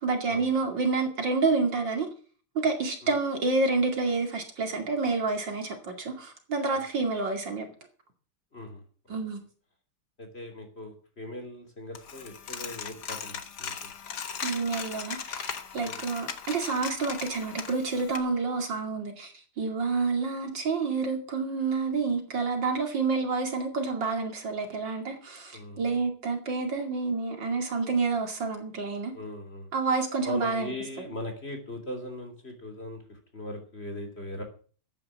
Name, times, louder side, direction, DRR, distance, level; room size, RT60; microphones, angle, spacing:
voice 1, 0.0-2.1 2.5-7.7 9.1-9.4 14.4-29.1 29.7-30.7 31.0-31.1, right 4 dB, 55° right, 3.0 m, -29 dB
voice 2, 8.5-8.8 9.1-9.2 10.2-13.7 15.8-16.0 25.5-26.0 29.1-29.7 30.2-34.4, left 1 dB, 30° left, 3.2 m, -39 dB
Coin (dropping), 12.0-18.2, left 7 dB, 55° left, 1.8 m, -38 dB
13.0 x 9.2 x 7.3 m
omnidirectional pair, 2.4 m